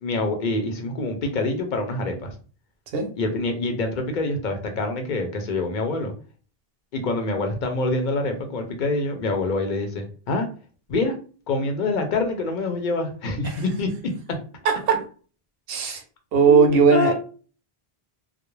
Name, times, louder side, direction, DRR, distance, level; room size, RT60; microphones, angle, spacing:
voice 1, 0.0-2.3 3.2-6.1 6.9-10.5 10.9-11.1 11.5-13.9 16.5-17.1, left 2 dB, 55° left, 4 dB, 0.7 m, -26 dB
voice 2, 14.6-15.0 15.7-16.0 16.3-17.1, right 5 dB, 70° right, 4 dB, 0.8 m, -18 dB
2.4 x 2.0 x 3.0 m, 0.38 s
omnidirectional pair, 1.0 m